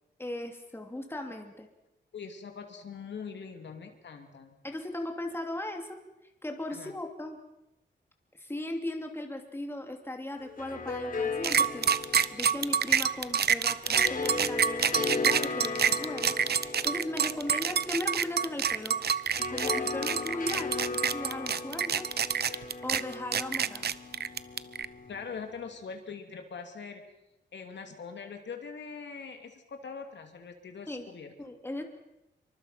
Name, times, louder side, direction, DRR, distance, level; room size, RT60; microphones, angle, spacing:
voice 1, 0.2-1.7 4.6-6.0 6.4-7.4 8.3-19.0 19.5-22.1 22.4-23.9 30.9-31.1 31.4-31.8, left 1 dB, 10° left, 3 dB, 2.9 m, -38 dB
voice 2, 2.1-4.6 6.7-6.9 25.1-27.0 27.5-31.3, left 5 dB, 70° left, 5 dB, 2.9 m, -42 dB
sound 1, 10.4-25.6, left 4 dB, 45° left, 3.6 m, -37 dB
sound 2, 11.4-24.9, right 7 dB, 60° right, 0.8 m, -27 dB
27.0 x 24.5 x 5.9 m, 0.90 s
wide cardioid pair, 130°, 19 cm